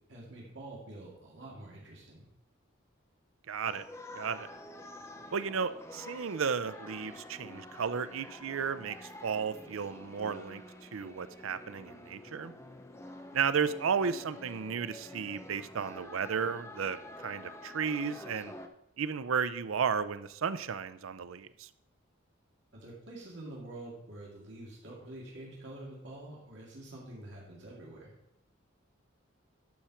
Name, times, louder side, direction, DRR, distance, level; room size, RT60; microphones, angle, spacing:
voice 1, 0.1-2.2 22.7-28.1, right 1 dB, 60° right, -3 dB, 2.1 m, -47 dB
voice 2, 3.5-3.8 4.2-4.5 5.3-10.6 10.9-12.5 13.3-18.5 19.0-21.7, right 6 dB, 90° right, 14 dB, 0.5 m, -33 dB
sound 1, 3.6-18.7, left 1 dB, 15° left, 0.6 m, -48 dB
12.0 x 4.4 x 5.8 m, 0.80 s
head